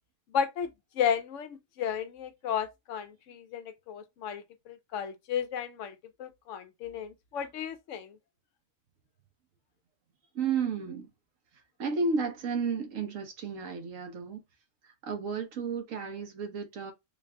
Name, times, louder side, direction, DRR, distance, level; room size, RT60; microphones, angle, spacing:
voice 1, 0.3-8.2, left 8 dB, 75° left, 0.9 m, -34 dB
voice 2, 10.3-11.1 11.8-14.4 14.8-16.9, right 5 dB, 85° right, 1.3 m, -32 dB
3.8 x 2.2 x 3.5 m
omnidirectional pair, 1.3 m